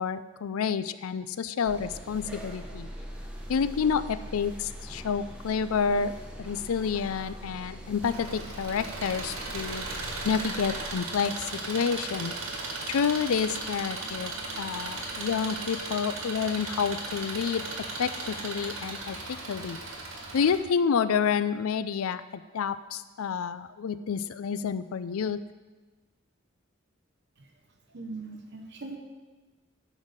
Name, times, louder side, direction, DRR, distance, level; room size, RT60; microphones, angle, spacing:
voice 1, 0.0-2.9 3.5-6.1 6.4-9.8 10.2-12.3 12.9-14.3 14.6-17.6 18.0-19.8 20.3-22.2 22.5-25.4, left 6 dB, 85° left, 13 dB, 0.4 m, -29 dB
sound 1, 1.6-10.9, equal, 5° right, 0.9 m, -42 dB
Engine, 8.0-20.6, right 2 dB, 80° right, 1.7 m, -36 dB
voice 2, 27.9-29.0, right 3 dB, 55° right, 3 dB, 0.9 m, -40 dB
10.5 x 4.1 x 6.5 m, 1.2 s
head